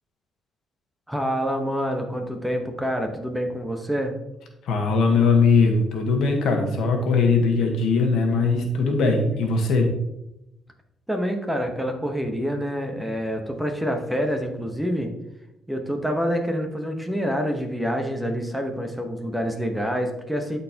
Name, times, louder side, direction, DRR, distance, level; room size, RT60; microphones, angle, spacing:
voice 1, 1.1-4.2 11.1-15.1 15.7-20.6, equal, 5° right, 4 dB, 1.1 m, -27 dB
voice 2, 4.6-9.9, left 4 dB, 80° left, 3 dB, 1.4 m, -20 dB
11.5 x 4.4 x 2.9 m, 0.88 s
cardioid pair, 90°, 0 cm